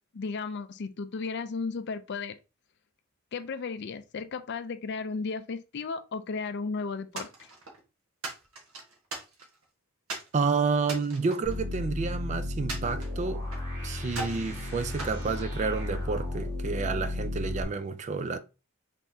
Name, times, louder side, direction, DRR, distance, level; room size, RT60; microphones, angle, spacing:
voice 1, 0.1-2.4 3.3-7.5, left 4 dB, 50° left, 0.4 m, -34 dB
sound 1, 7.2-7.8 8.2-9.6 10.1-10.3 10.8-12.2 12.7-13.7 14.1-14.5 15.0-16.0, right 2 dB, 70° right, 1.3 m, -40 dB
voice 2, 10.3-13.4 13.8-18.4, right 4 dB, 35° right, 0.3 m, -30 dB
sound 2, 11.4-17.6, left 1 dB, 10° right, 2.1 m, -34 dB
5.3 x 3.4 x 2.7 m
head